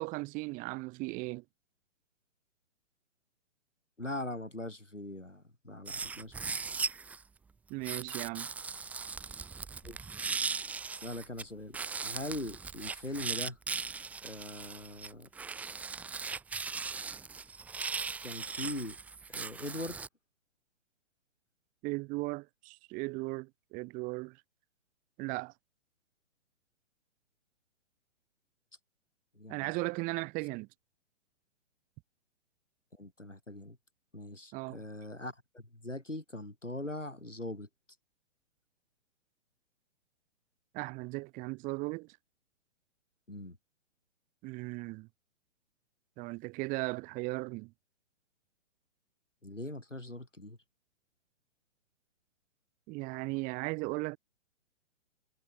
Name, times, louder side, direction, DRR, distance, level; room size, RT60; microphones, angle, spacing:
voice 1, 0.0-1.4 7.7-8.5 21.8-24.4 25.2-25.5 29.5-30.7 34.5-34.8 40.7-42.1 44.4-45.1 46.2-47.7 52.9-54.2, right 25 dB, 20° right, 1.6 m, -37 dB
voice 2, 4.0-6.6 9.8-10.0 11.0-11.8 12.0-13.6 14.2-15.3 18.2-19.0 19.3-20.0 29.4-29.8 33.0-33.8 34.1-37.7 43.3-43.6 49.4-50.6, left 1 dB, 90° left, 3.5 m, -41 dB
sound 1, 5.9-7.2 7.8-11.4 11.7-20.1, right 5 dB, 5° right, 0.7 m, -38 dB
figure-of-eight pair, 125°, 36 cm